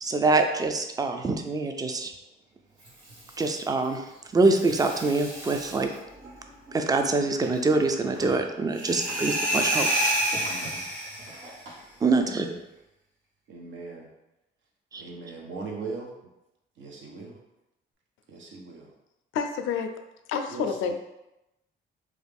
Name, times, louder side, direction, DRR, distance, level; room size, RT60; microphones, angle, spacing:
voice 1, 0.0-2.1 3.4-4.1 4.3-5.9 6.7-9.9 12.0-12.5 14.9-15.0, right 3 dB, 20° right, 6 dB, 0.4 m, -24 dB
Water tap faucet / Sink (filling or washing), 2.6-12.8, right 1 dB, 90° right, 1.2 m, -46 dB
sound 1, 8.7-11.5, right 1 dB, 40° right, 1.2 m, -27 dB
voice 2, 8.9-9.3 10.4-10.8 12.2-12.6 13.5-14.1 15.0-16.1 16.8-17.4 18.3-18.9 20.5-20.9, right 4 dB, 70° right, 0 dB, 0.8 m, -40 dB
voice 3, 19.3-19.9 20.3-20.9, left 6 dB, 85° left, 6 dB, 0.4 m, -28 dB
3.1 x 2.4 x 3.4 m, 0.92 s
cardioid pair, 90°, 20 cm